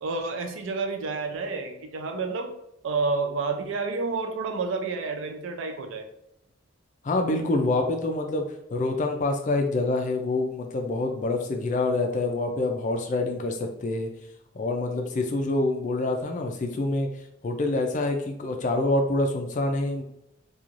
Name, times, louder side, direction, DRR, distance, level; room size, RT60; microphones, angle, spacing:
voice 1, 0.0-2.5 2.8-6.1, right 4 dB, 60° right, 6 dB, 0.4 m, -29 dB
voice 2, 7.0-8.4 8.7-14.1 14.5-17.1 17.4-20.0, left 2 dB, 35° left, 3 dB, 0.3 m, -26 dB
3.0 x 2.3 x 2.5 m, 0.79 s
head